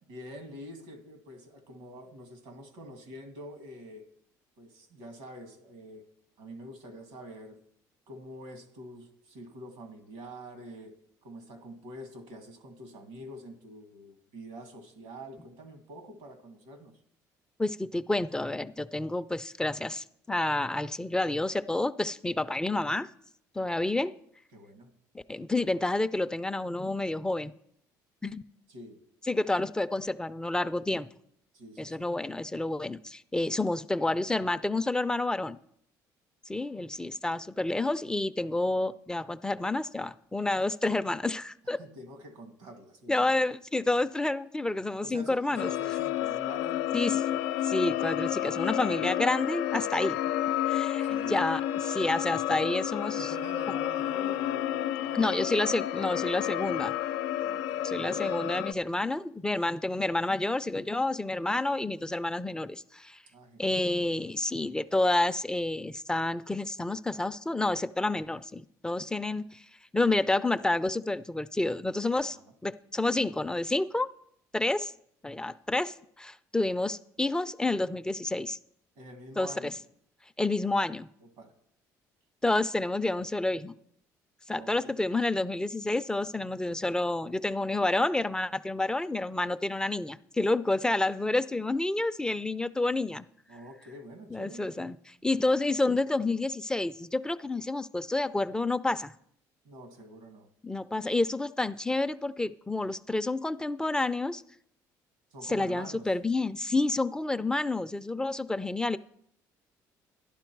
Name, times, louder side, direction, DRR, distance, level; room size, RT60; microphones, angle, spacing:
voice 1, 0.1-4.0 4.6-6.0 6.4-7.6 8.1-10.9 11.2-16.9 24.5-24.9 28.7-29.0 31.5-32.1 41.6-43.3 45.0-47.7 51.0-51.4 53.2-55.5 57.4-57.9 63.3-63.8 72.3-72.4 79.0-79.7 81.2-81.5 84.5-85.1 93.5-94.8 99.6-100.5 105.3-106.1, equal, 90° right, 6 dB, 2.1 m, -46 dB
voice 2, 17.6-23.1 23.6-24.1 25.1-27.5 28.2-28.4 29.3-31.1 31.8-35.6 36.5-41.8 43.1-45.7 46.9-47.1 47.7-50.2 50.7-53.3 55.1-56.9 57.8-63.2 63.6-69.7 69.9-72.4 72.6-74.1 74.5-74.9 75.2-78.6 79.4-79.7 80.4-81.1 82.4-83.7 84.5-93.2 94.3-95.0 95.2-99.1 100.6-104.4 105.5-109.0, left 2 dB, 10° left, 12 dB, 0.4 m, -29 dB
sound 1, 45.6-58.7, left 12 dB, 90° left, 0.4 m, -30 dB
11.5 x 11.0 x 4.6 m, 0.70 s
cardioid pair, 95°, 8 cm